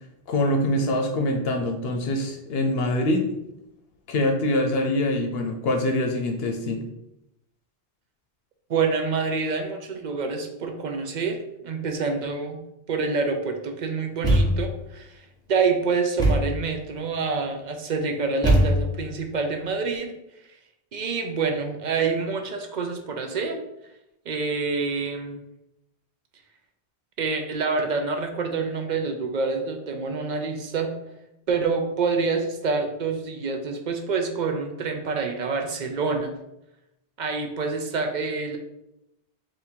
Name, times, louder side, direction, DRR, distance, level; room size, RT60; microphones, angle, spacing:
voice 1, 0.3-3.2 4.1-6.8, left 1 dB, 75° left, 3 dB, 0.8 m, -24 dB
voice 2, 8.7-12.6 12.9-20.1 20.9-23.6 24.3-25.4 27.2-30.9 31.5-36.3 37.2-38.6, right 4 dB, 55° right, 5 dB, 0.6 m, -27 dB
Thump thud, 14.2-14.8 16.2-16.6 18.4-19.1, right 1 dB, 5° left, 1.0 m, -21 dB
3.6 x 2.6 x 4.3 m, 0.86 s
omnidirectional pair, 1.0 m